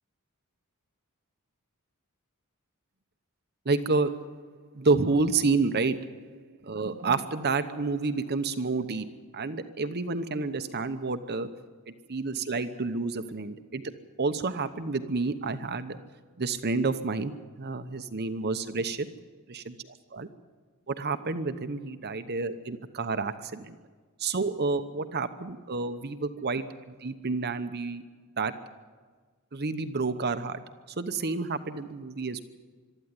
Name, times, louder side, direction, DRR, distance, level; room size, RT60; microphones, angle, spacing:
voice 1, 3.6-4.5 4.7-6.2 6.6-9.1 9.3-11.5 12.1-13.8 14.2-16.0 16.4-19.1 19.5-19.8 20.1-20.3 20.9-23.8 24.2-26.6 27.0-28.0 28.4-28.6 29.5-30.6 31.0-32.4, right 3 dB, 50° right, 9 dB, 0.9 m, -29 dB
23.0 x 13.0 x 9.6 m, 1.4 s
head